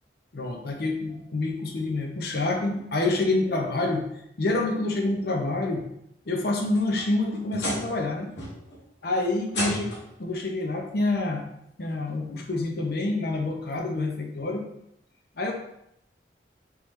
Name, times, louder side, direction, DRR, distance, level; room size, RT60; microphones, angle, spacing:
voice 1, 0.3-4.1 4.4-5.8 6.3-8.3 9.0-9.9 10.2-11.5 11.8-14.7 15.4-15.5, left 2 dB, 60° left, 1 dB, 0.6 m, -27 dB
sound 1, 6.6-8.1 8.4-8.8 9.5-10.2 11.3-11.4 12.1-12.2 13.8-13.9, left 1 dB, 75° left, 1.4 m, -33 dB
3.7 x 3.0 x 3.1 m, 0.76 s
head